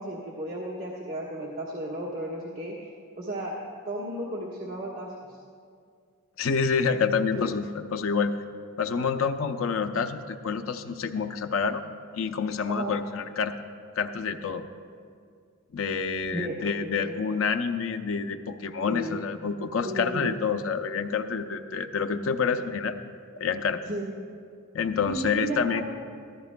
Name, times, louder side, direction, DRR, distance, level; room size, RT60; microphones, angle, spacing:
voice 1, 0.0-2.7 3.2-3.6 3.8-5.1 12.7-12.9 16.3-16.6 16.8-17.2 18.9-19.2 19.8-20.3 23.8-24.1 25.1-25.8, right 1 dB, 45° right, -5 dB, 1.4 m, -34 dB
voice 2, 6.4-8.3 8.8-11.8 12.1-13.5 14.0-14.6 15.7-23.0 23.4-23.8 24.7-25.8, left 5 dB, 75° left, 8 dB, 0.5 m, -28 dB
15.0 x 13.5 x 2.2 m, 2.2 s
head